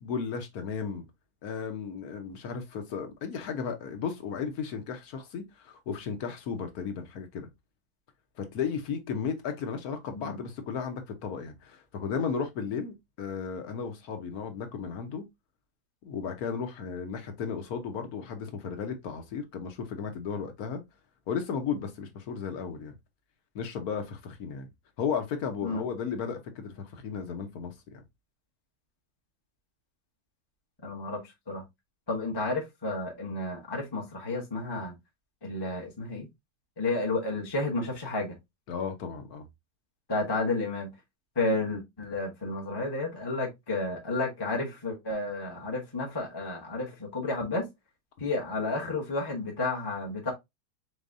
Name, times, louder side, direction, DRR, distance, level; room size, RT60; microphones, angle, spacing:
voice 1, 0.0-1.0 1.4-7.5 8.4-15.3 16.0-20.8 21.3-22.9 23.5-24.7 25.0-27.7 38.7-39.4, left 6 dB, 65° left, 1.3 m, -34 dB
voice 2, 30.8-31.6 32.1-34.9 35.4-36.3 36.8-38.3 40.1-40.9 41.4-47.7 48.2-50.3, left 2 dB, 20° left, 0.8 m, -31 dB
4.4 x 3.4 x 2.5 m
omnidirectional pair, 1.8 m